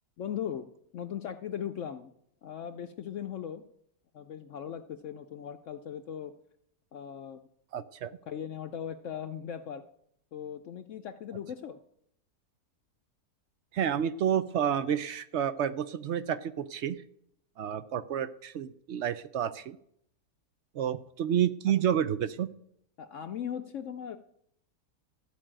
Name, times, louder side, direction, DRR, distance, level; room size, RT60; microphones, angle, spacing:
voice 1, 0.2-0.7 0.9-2.1 2.4-3.6 4.1-6.3 6.9-7.4 8.3-9.8 10.3-11.8 23.0-24.2, left 9 dB, 65° left, 9 dB, 0.8 m, -38 dB
voice 2, 7.7-8.1 13.7-17.0 17.6-19.8 20.7-22.5, right 9 dB, 65° right, 14 dB, 0.7 m, -30 dB
13.5 x 5.1 x 8.8 m, 0.71 s
omnidirectional pair, 1.7 m